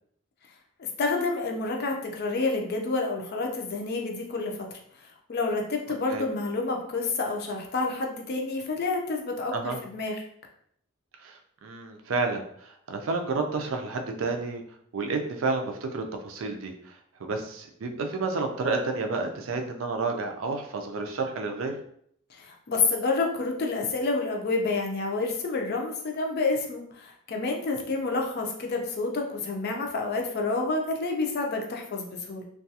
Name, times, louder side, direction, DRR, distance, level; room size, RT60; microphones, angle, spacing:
voice 1, 0.8-4.7 5.3-10.1 22.4-32.4, left 3 dB, 50° left, 2 dB, 0.5 m, -29 dB
voice 2, 11.2-14.6 14.9-21.8, right 3 dB, 75° right, 4 dB, 0.4 m, -30 dB
2.3 x 2.3 x 2.7 m, 0.66 s
head